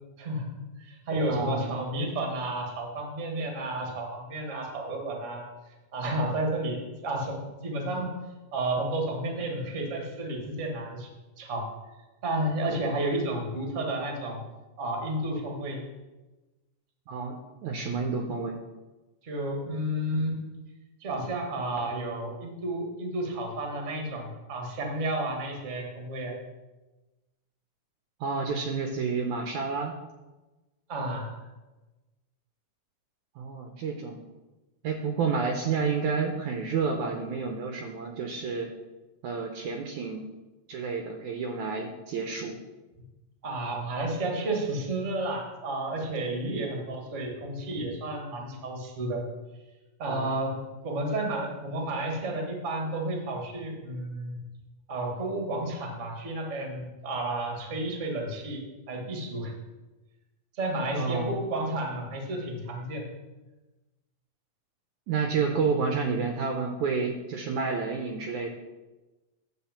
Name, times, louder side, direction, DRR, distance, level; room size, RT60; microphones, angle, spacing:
voice 1, 0.2-0.5 0.8-5.4 5.9-8.1 8.5-11.1 11.4-11.6 12.2-14.4 14.8-15.9 19.2-20.4 21.0-26.3 30.9-31.3 43.4-49.2 50.0-50.5 50.8-54.4 54.9-58.6 58.9-59.5 60.6-63.1, right 1 dB, 35° right, 0 dB, 1.3 m, -31 dB
voice 2, 1.3-1.8 17.1-18.6 28.2-29.9 33.4-34.2 34.8-38.7 39.2-40.2 40.7-42.6 46.5-46.6 50.1-50.3 60.9-61.4 65.1-68.5, right 5 dB, 75° right, 3 dB, 1.9 m, -30 dB
10.0 x 4.1 x 7.2 m, 1.1 s
omnidirectional pair, 3.9 m